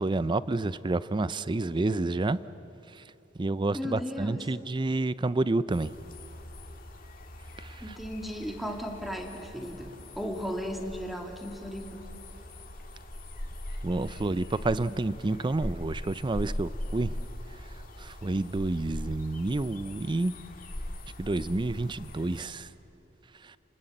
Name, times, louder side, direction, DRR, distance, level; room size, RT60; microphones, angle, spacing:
voice 1, 0.0-2.4 3.4-5.9 13.8-17.1 18.0-20.3 21.2-22.7, right 2 dB, 25° right, 16 dB, 0.5 m, -29 dB
voice 2, 3.7-4.5 7.8-12.0, equal, ahead, 2 dB, 2.2 m, -36 dB
sound 1, 5.7-22.5, left 1 dB, 45° left, 2.1 m, -41 dB
29.5 x 19.5 x 7.9 m, 3.0 s
head